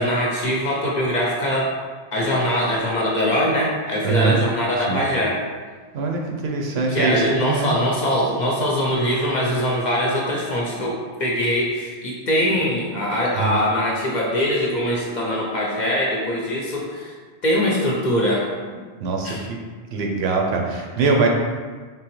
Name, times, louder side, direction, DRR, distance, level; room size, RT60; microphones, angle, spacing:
voice 1, 0.0-1.7 2.1-5.4 6.9-17.1 17.4-18.5 19.2-19.4, equal, 50° left, -4 dB, 0.6 m, -22 dB
voice 2, 4.0-4.4 4.9-5.0 5.9-7.8 13.3-13.6 19.0-19.6 19.9-21.3, right 4 dB, 70° right, 1 dB, 0.8 m, -22 dB
3.7 x 2.9 x 3.0 m, 1.5 s
omnidirectional pair, 1.1 m